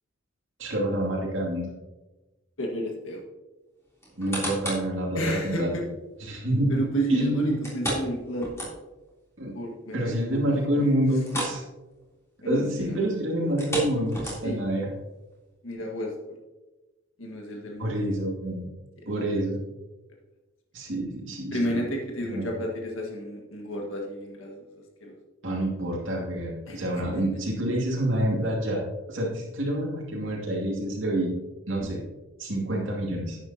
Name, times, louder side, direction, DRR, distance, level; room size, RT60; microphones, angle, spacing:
voice 1, 0.6-1.7 4.2-5.9 6.2-6.7 7.1-7.4 9.4-9.6 9.9-11.6 12.4-14.9 17.8-18.7 19.1-19.6 20.7-21.8 22.2-22.5 25.4-28.8 29.1-31.3 31.7-32.0 32.4-33.4, right 1 dB, 65° right, -3 dB, 2.5 m, -27 dB
voice 2, 2.6-3.2 5.1-5.9 6.7-8.7 9.5-10.9 11.3-11.4 12.4-13.7 14.4-14.6 15.6-16.4 17.2-18.0 21.5-24.7 25.0-25.2 26.7-26.8 27.1-27.2, right 1 dB, 70° left, 0 dB, 1.8 m, -32 dB
sound 1, 4.0-4.9 5.4-5.5 7.6-9.1 9.4-9.5 10.0-10.1 11.2-11.6 11.9-12.1 13.4-14.7 15.3-15.4, equal, 15° left, 3.3 m, -32 dB
11.0 x 9.1 x 2.9 m, 1.1 s
head